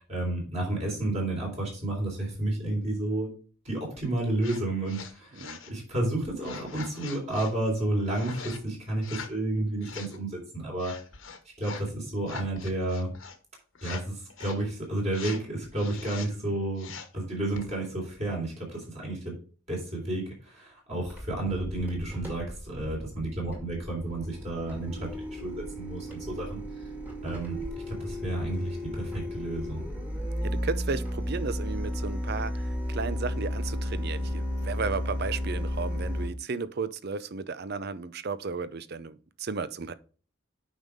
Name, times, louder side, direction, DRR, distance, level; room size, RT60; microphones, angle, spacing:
voice 1, 0.0-3.3 3.7-5.4 5.7-11.0 11.6-13.1 13.8-19.4 19.7-24.9 25.3-26.6 27.2-27.6 27.9-29.8, right 2 dB, 30° right, 3.6 m, -31 dB
sound 1, 4.4-4.6 4.9-5.7 6.4-7.5 8.1-8.6 9.0-9.4 9.8-10.2 10.8-11.9 12.2-13.4 13.8-14.0 14.3-14.6 15.1-15.4 15.8-16.3 16.8-17.2 17.5-17.7, left 6 dB, 65° left, 1.2 m, -42 dB
sound 2, 21.0-36.3, equal, 10° right, 2.1 m, -34 dB
voice 2, 30.4-39.9, right 4 dB, 50° right, 0.5 m, -34 dB
8.7 x 5.4 x 3.6 m
head